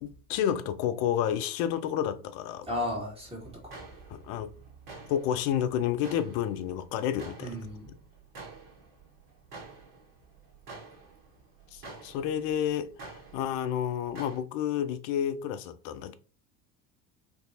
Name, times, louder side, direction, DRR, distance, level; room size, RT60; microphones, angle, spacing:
voice 1, 0.0-2.7 4.1-4.5 5.1-7.6 11.7-16.1, left 9 dB, 45° left, 0.5 m, -30 dB
voice 2, 2.7-3.7 7.4-8.0, left 1 dB, 10° right, 1.7 m, -35 dB
sound 1, 3.4-14.4, right 3 dB, 40° right, 1.5 m, -49 dB
4.5 x 2.6 x 2.8 m
figure-of-eight pair, 70°, 49 cm